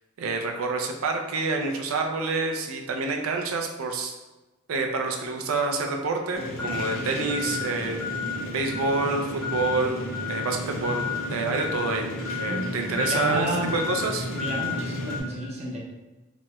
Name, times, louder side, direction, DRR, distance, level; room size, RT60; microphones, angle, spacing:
voice 1, 0.2-4.1 4.7-8.0 8.5-14.3, right 3 dB, 80° right, 3 dB, 0.4 m, -28 dB
sound 1, 6.3-15.2, left 3 dB, 65° left, 0.7 m, -31 dB
voice 2, 12.5-13.8 14.3-15.8, right 1 dB, 30° right, -3 dB, 0.6 m, -31 dB
3.0 x 2.9 x 2.2 m, 1.1 s
head